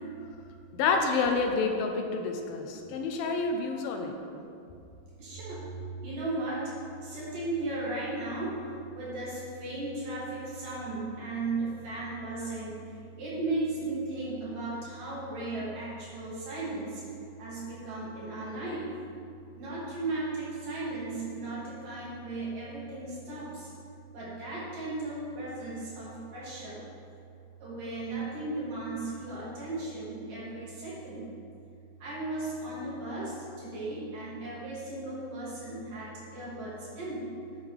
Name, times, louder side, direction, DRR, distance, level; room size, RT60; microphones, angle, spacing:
voice 1, 0.7-4.2, left 4 dB, 85° left, 4 dB, 2.7 m, -28 dB
voice 2, 5.2-5.7 6.0-6.6 7.0-8.5 8.9-12.8 13.2-17.0 17.4-18.9 19.6-23.7 24.1-26.8 27.6-31.3 32.0-37.3, right 2 dB, 65° right, -8 dB, 4.4 m, -36 dB
12.5 x 9.2 x 3.5 m, 2.5 s
omnidirectional pair, 4.1 m